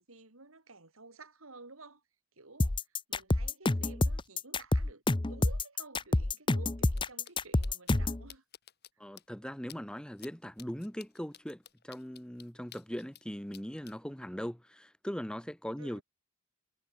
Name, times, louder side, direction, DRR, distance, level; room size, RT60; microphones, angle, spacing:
voice 1, 0.0-2.0 2.4-2.8 3.1-8.4 15.8-16.0, right 3 dB, 85° right, 4.1 m, -53 dB
sound 1, 2.6-8.2, left 2 dB, 25° left, 0.7 m, -28 dB
sound 2, 6.9-7.0 7.2-7.3 7.6-7.9 8.3-8.9 9.2-9.3 9.7-9.8 10.2-10.3 10.6-13.2 13.5-13.9, left 10 dB, 50° left, 7.0 m, -52 dB
voice 2, 9.0-16.0, equal, 5° left, 0.9 m, -40 dB
head